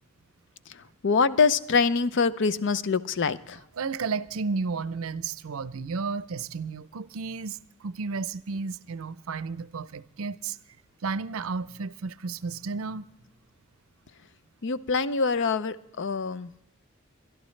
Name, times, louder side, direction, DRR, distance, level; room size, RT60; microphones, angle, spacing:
voice 1, 0.7-3.6 14.6-16.5, left 5 dB, 60° left, 0.6 m, -25 dB
voice 2, 3.8-10.6 11.0-13.1, right 4 dB, 75° right, 0.5 m, -33 dB
22.5 x 12.5 x 3.2 m
head